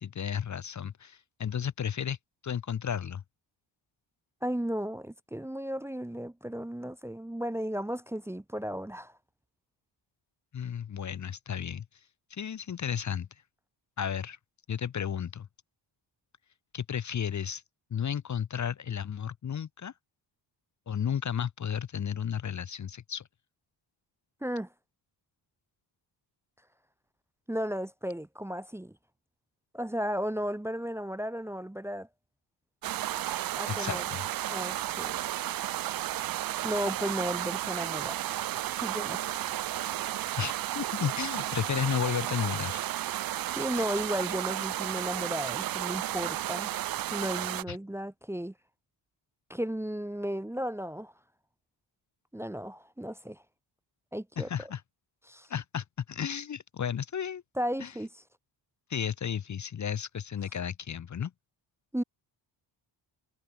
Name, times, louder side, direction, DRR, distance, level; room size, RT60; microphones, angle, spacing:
voice 1, 0.0-2.2 2.4-3.2 10.5-11.9 12.3-13.3 14.0-14.4 14.7-15.5 16.7-17.6 17.9-19.9 20.9-23.3 33.7-34.2 40.4-42.8 47.7-47.8 54.4-54.8 55.5-57.4 57.8-57.9 58.9-61.3, left 8 dB, 40° left, 0.9 m, -33 dB
voice 2, 4.4-9.1 24.4-24.7 27.5-28.9 29.7-32.1 33.6-34.0 34.5-35.2 36.6-38.5 38.8-39.3 43.5-46.7 47.1-48.5 49.5-51.1 52.3-53.4 54.1-54.7 55.3-55.5 57.6-58.2 61.9-62.0, equal, 5° right, 1.0 m, -34 dB
sound 1, 32.8-47.6, right 13 dB, 50° right, 0.5 m, -33 dB
wide cardioid pair, 160°, 45 cm